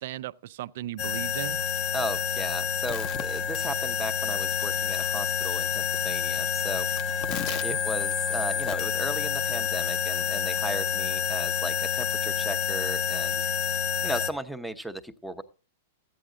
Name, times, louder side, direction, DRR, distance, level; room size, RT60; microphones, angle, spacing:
voice 1, 0.0-1.7 7.3-7.8, right 14 dB, 65° right, 0.5 m, -37 dB
sound 1, 1.0-14.3, left 7 dB, 40° left, 0.7 m, -28 dB
voice 2, 1.9-6.9 7.6-13.4 14.0-15.4, right 1 dB, ahead, 0.7 m, -36 dB
13.5 x 9.2 x 3.7 m
hypercardioid pair, 135°, 0 cm